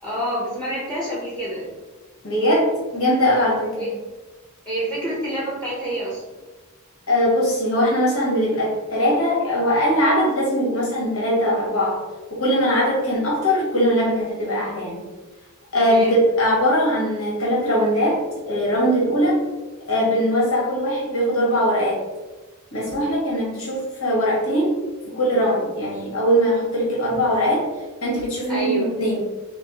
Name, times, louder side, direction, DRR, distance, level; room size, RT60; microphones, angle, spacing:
voice 1, 0.0-1.7 3.8-3.9 4.7-6.3 15.7-16.2 28.5-28.9, right 1 dB, 5° left, -6 dB, 0.9 m, -27 dB
voice 2, 2.2-3.9 7.1-12.0 12.3-15.0 15.7-19.4 19.9-22.0 22.7-24.8 25.1-27.7 28.0-29.2, equal, 75° left, -5 dB, 1.3 m, -21 dB
5.9 x 2.1 x 3.0 m, 1.2 s
head